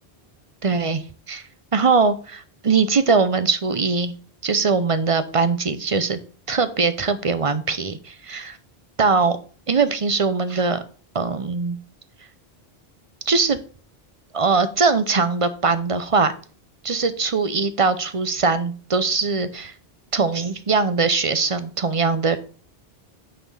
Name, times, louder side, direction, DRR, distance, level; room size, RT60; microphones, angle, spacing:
voice 1, 0.6-1.0 1.3-1.4 1.7-4.1 4.4-6.2 6.5-8.6 9.0-9.4 9.7-10.8 11.1-11.8 13.3-13.6 14.3-16.3 16.8-19.7 20.1-22.4, right 4 dB, 35° right, 12 dB, 0.7 m, -21 dB
9.1 x 4.4 x 5.5 m, 0.41 s
omnidirectional pair, 1.0 m